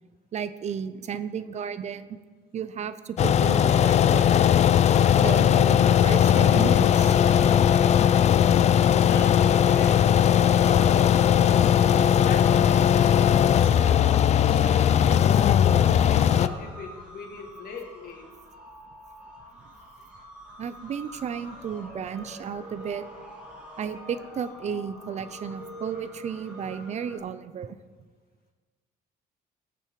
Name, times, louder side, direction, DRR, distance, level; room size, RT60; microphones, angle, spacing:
voice 1, 0.3-2.2 2.5-4.3 5.2-7.2 20.6-23.0 23.8-27.8, right 7 dB, 40° right, 13 dB, 0.5 m, -33 dB
sound 1, 3.2-16.5, left 9 dB, 40° left, 0.4 m, -19 dB
voice 2, 9.0-11.3 11.5-14.8 15.5-18.3, left 4 dB, 60° left, 2 dB, 2.1 m, -39 dB
sound 2, 10.7-27.2, equal, 5° right, 3.0 m, -44 dB
16.0 x 6.9 x 4.7 m, 1.4 s
cardioid pair, 110°, 17 cm